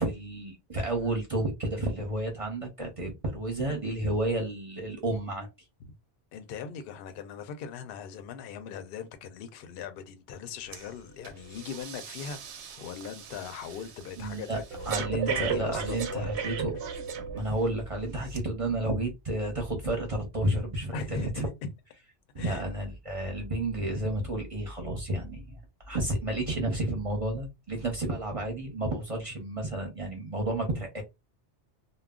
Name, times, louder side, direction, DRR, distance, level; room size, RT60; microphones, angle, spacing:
voice 1, 0.0-5.5 14.2-16.8 17.3-21.5 22.3-31.0, right 1 dB, 35° right, 0.7 m, -31 dB
voice 2, 6.3-12.4 12.8-16.4 20.9-21.5 22.4-22.6, left 7 dB, 60° left, 0.7 m, -39 dB
Breathing, 10.7-10.9 11.2-17.7 18.3-18.4, right 7 dB, 70° right, 0.8 m, -36 dB
2.3 x 2.1 x 3.5 m
omnidirectional pair, 1.2 m